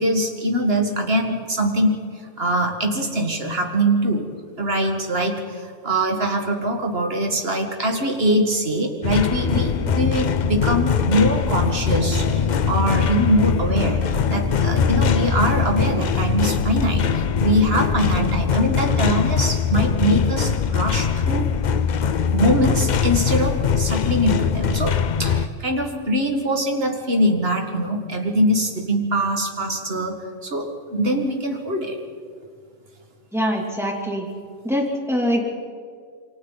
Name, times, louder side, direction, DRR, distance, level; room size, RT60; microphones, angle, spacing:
voice 1, 0.0-2.0 2.4-4.3 4.6-21.5 22.3-32.0, equal, 50° right, 3 dB, 2.2 m, -23 dB
sound 1, 9.0-25.5, left 7 dB, 50° left, 0.6 m, -22 dB
sound 2, 9.6-18.4, equal, 30° right, 1.8 m, -31 dB
voice 2, 33.3-34.3 34.6-35.4, equal, ahead, -1 dB, 3.0 m, -23 dB
28.0 x 24.0 x 4.1 m, 2.1 s
omnidirectional pair, 1.3 m